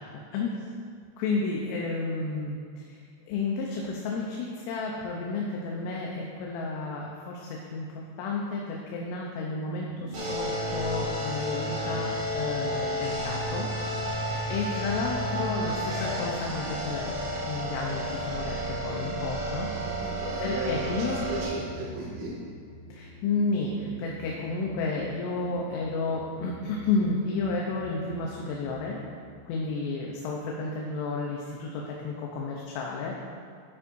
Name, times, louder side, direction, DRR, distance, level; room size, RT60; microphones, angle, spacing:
voice 1, 0.3-0.7 1.2-3.0 3.3-13.7 14.5-17.2 17.5-19.7 20.1-21.3 22.9-29.0 29.5-33.2, left 3 dB, 80° left, -2 dB, 3.2 m, -31 dB
sound 1, 9.9-29.4, equal, 25° left, 1.6 m, -47 dB
sound 2, 10.1-21.4, equal, 40° right, 1.9 m, -32 dB
voice 2, 19.7-22.4, right 1 dB, 70° right, -7 dB, 4.5 m, -36 dB
13.0 x 8.2 x 2.6 m, 2.1 s
omnidirectional pair, 5.6 m